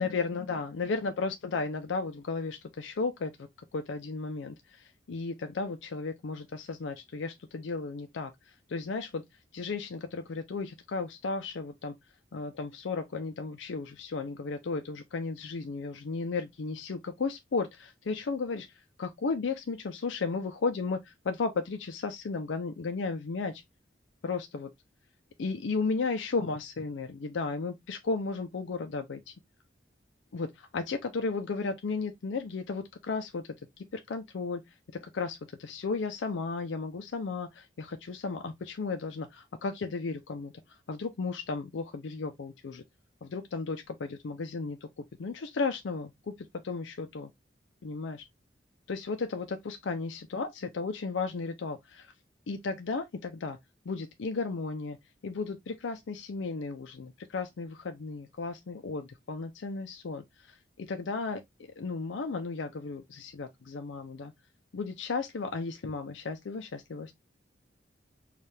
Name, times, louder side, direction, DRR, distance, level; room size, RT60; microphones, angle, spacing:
voice 1, 0.0-8.3 8.7-9.2 9.5-12.0 12.3-18.7 19.0-23.6 24.2-24.7 25.4-29.3 30.3-33.5 33.9-34.6 34.9-42.8 43.2-46.3 46.6-47.3 47.8-48.2 48.9-52.1 52.5-53.6 53.9-55.0 55.2-61.4 61.8-64.3 64.7-67.1, left 4 dB, 90° left, 0.5 m, -34 dB
4.4 x 2.4 x 3.2 m
head